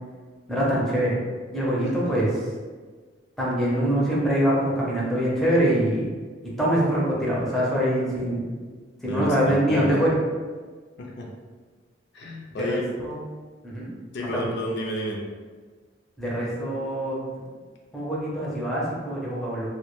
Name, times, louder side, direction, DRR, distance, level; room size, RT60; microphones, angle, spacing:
voice 1, 0.5-1.2 1.5-2.3 3.4-6.1 6.6-8.5 9.0-10.1 12.6-13.2 13.6-13.9 14.3-14.4 16.2-17.2 17.9-19.7, right 1 dB, ahead, -6 dB, 0.5 m, -24 dB
voice 2, 1.8-2.1 9.0-10.0 11.0-11.3 12.1-12.8 14.1-15.2, left 1 dB, 60° left, -1 dB, 0.4 m, -31 dB
2.1 x 2.1 x 2.9 m, 1.4 s
head